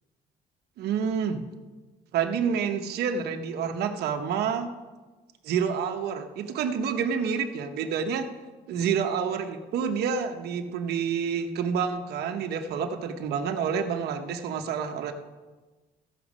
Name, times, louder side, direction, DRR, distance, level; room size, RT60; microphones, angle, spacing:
voice 1, 0.8-1.4 2.1-4.7 5.4-8.3 8.7-15.1, right 7 dB, 75° right, 6 dB, 1.1 m, -28 dB
15.5 x 6.0 x 5.3 m, 1.3 s
cardioid pair, 110°, 17 cm